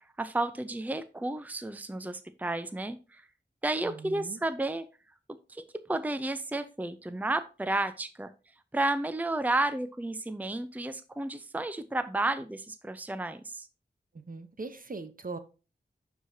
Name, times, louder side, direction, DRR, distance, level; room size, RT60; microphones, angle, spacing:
voice 1, 0.2-3.2 3.6-4.8 5.5-8.3 8.7-13.7, right 2 dB, 10° right, 0.6 m, -32 dB
voice 2, 3.8-4.4 14.3-15.4, right 3 dB, 50° right, 0.9 m, -40 dB
11.5 x 4.8 x 2.7 m
wide cardioid pair, 45°, 18 cm